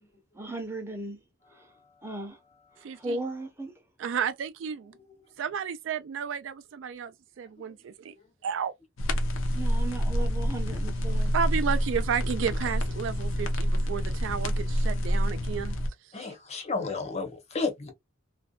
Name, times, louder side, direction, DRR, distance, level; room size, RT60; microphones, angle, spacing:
voice 1, 0.3-1.2 1.5-1.7 2.0-2.4 2.9-3.7 9.5-11.4, right 2 dB, 10° right, 0.6 m, -36 dB
voice 2, 2.8-3.2 4.0-4.9 5.4-8.1 8.4-8.7 11.3-15.8, right 7 dB, 65° right, 0.3 m, -32 dB
sound 1, 9.0-15.9, equal, 75° left, 0.6 m, -27 dB
voice 3, 16.1-17.9, left 4 dB, 30° left, 0.7 m, -32 dB
2.6 x 2.1 x 2.2 m
head